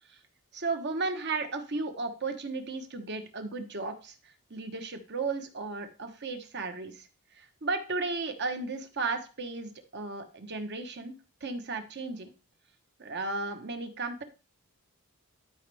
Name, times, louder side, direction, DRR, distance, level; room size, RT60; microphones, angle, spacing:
voice 1, 0.5-4.1 4.5-11.1 11.4-12.3 13.0-14.2, right 3 dB, 50° right, 7 dB, 1.2 m, -34 dB
12.5 x 5.2 x 3.5 m, 0.33 s
head